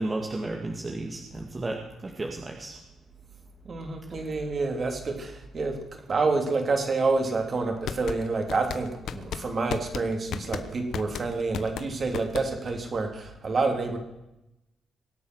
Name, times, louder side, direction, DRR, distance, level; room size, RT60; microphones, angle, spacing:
voice 1, 0.0-2.8, right 2 dB, 25° right, 1 dB, 2.0 m, -33 dB
voice 2, 3.7-5.8 6.1-14.0, right 3 dB, 40° right, 3 dB, 3.4 m, -28 dB
sound 1, 7.6-12.8, left 8 dB, 70° left, 1.0 m, -35 dB
23.0 x 8.5 x 6.4 m, 0.92 s
cardioid pair, 90°, 0 cm